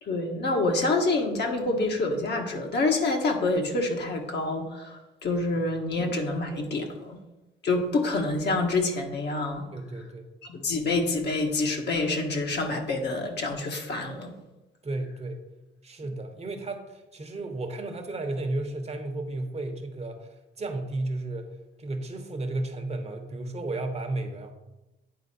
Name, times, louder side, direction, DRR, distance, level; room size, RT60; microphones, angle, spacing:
voice 1, 0.0-7.2 7.6-9.7 10.4-14.3, left 2 dB, 60° left, 2 dB, 1.4 m, -27 dB
voice 2, 9.7-10.3 14.8-15.4 15.8-20.3 20.6-21.5 21.8-24.5, right 2 dB, 35° right, 6 dB, 1.0 m, -33 dB
9.4 x 4.3 x 4.3 m, 1.0 s
cardioid pair, 90°, 20 cm